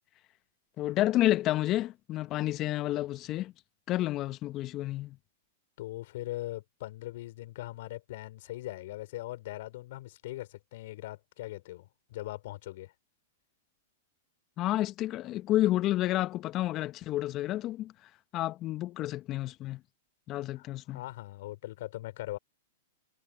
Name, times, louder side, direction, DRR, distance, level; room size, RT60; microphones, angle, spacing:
voice 1, 0.8-3.5 3.9-5.2 14.6-17.9 18.3-19.8 20.3-21.0, left 15 dB, 35° left, 1.2 m, -30 dB
voice 2, 5.8-12.9 20.6-22.4, left 16 dB, 60° left, 3.7 m, -40 dB
hypercardioid pair, 110°, 0 cm